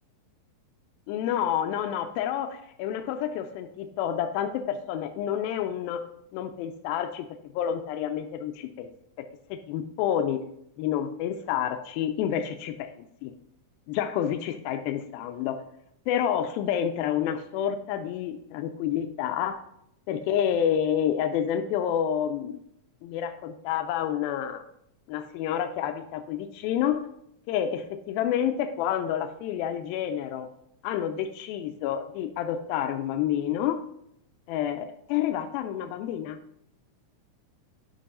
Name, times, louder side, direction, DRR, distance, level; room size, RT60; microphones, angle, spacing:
voice 1, 1.1-6.0 6.3-7.3 7.6-8.9 9.2-10.4 10.8-12.9 13.2-13.3 13.9-15.6 16.1-19.6 20.1-22.6 23.0-24.6 25.1-27.1 27.5-30.5 30.8-33.8 34.5-36.4, left 9 dB, 90° left, 7 dB, 2.4 m, -29 dB
9.9 x 5.3 x 4.2 m, 0.74 s
omnidirectional pair, 4.2 m